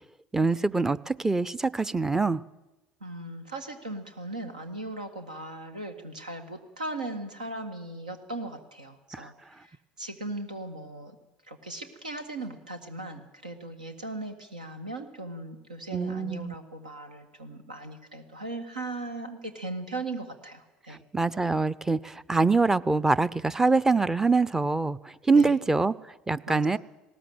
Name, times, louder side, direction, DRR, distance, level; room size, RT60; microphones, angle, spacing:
voice 1, 0.3-2.4 9.1-9.3 15.9-16.6 20.9-25.9 26.3-26.8, right 3 dB, 10° right, 19 dB, 0.6 m, -24 dB
voice 2, 3.0-11.2 11.5-21.0 25.3-25.6 26.5-26.8, right 2 dB, 85° right, 8 dB, 1.8 m, -38 dB
19.5 x 17.5 x 7.9 m, 1.0 s
figure-of-eight pair, 65°, 4 cm